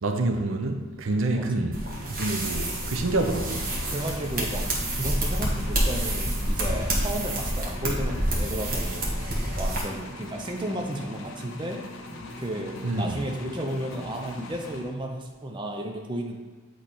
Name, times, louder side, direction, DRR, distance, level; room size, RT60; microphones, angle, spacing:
voice 1, 0.0-1.7 2.0-3.6 12.8-13.2, right 2 dB, 80° right, 5 dB, 0.6 m, -27 dB
voice 2, 1.0-1.5 3.2-3.5 3.9-4.6 4.9-9.0 9.5-11.8 12.4-16.4, right 1 dB, 25° right, 2 dB, 0.5 m, -33 dB
sound 1, 1.7-9.8, right 1 dB, 45° right, 1.2 m, -28 dB
sound 2, 1.9-14.8, left 1 dB, 35° left, 0.5 m, -45 dB
sound 3, 2.4-15.4, left 2 dB, 75° left, 0.6 m, -43 dB
8.0 x 3.2 x 4.2 m, 1.4 s
head